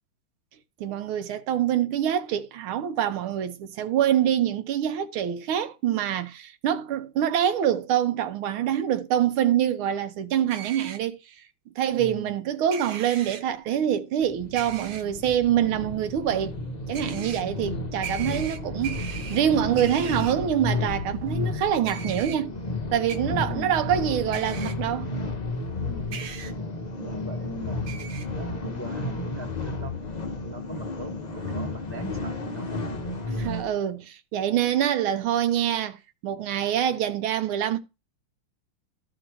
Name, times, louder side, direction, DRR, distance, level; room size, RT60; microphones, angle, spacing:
voice 1, 0.8-11.2 11.8-16.5 16.9-22.6 22.9-25.1 33.4-37.8, right 10 dB, 80° right, 1.6 m, -25 dB
sound 1, 10.5-11.0 12.7-13.4 14.6-15.0 16.9-17.4 18.0-19.4 19.8-20.3 21.9-22.4 23.1-23.2 24.3-24.7 26.1-26.5 27.9-28.3, right 8 dB, 65° right, 1.6 m, -38 dB
voice 2, 12.0-12.3 23.3-23.8 25.8-26.2 27.0-27.9 28.3-32.7, equal, 10° left, 0.9 m, -40 dB
sound 2, 14.2-33.7, left 2 dB, 60° left, 0.4 m, -32 dB
14.0 x 5.2 x 3.0 m
omnidirectional pair, 2.3 m